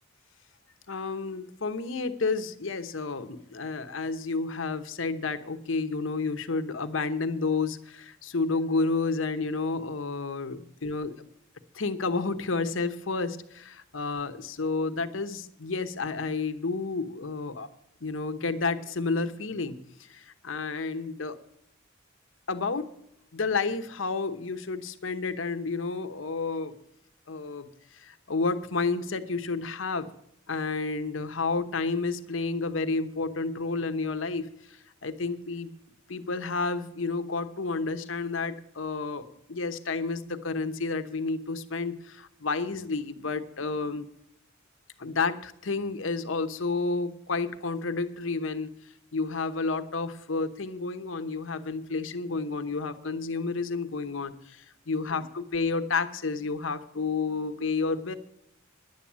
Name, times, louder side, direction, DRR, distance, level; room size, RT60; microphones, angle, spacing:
voice 1, 0.9-11.3 11.7-17.7 18.0-19.8 20.1-21.4 22.5-22.9 23.3-26.8 27.3-27.7 27.9-30.1 30.5-34.5 35.0-35.7 36.1-44.1 45.0-48.7 49.1-58.2, left 4 dB, 65° left, 9 dB, 0.9 m, -30 dB
11.0 x 8.7 x 7.3 m, 0.74 s
head